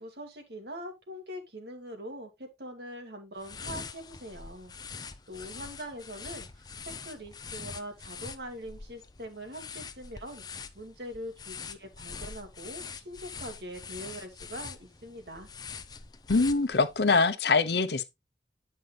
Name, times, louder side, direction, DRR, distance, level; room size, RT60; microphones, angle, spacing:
voice 1, 0.0-10.4 10.7-15.5, equal, 65° right, 2.0 m, -43 dB
sound 1, 3.4-17.1, left 5 dB, 25° left, 0.6 m, -44 dB
voice 2, 16.3-18.0, left 4 dB, 70° left, 0.8 m, -24 dB
9.6 x 5.4 x 3.3 m
head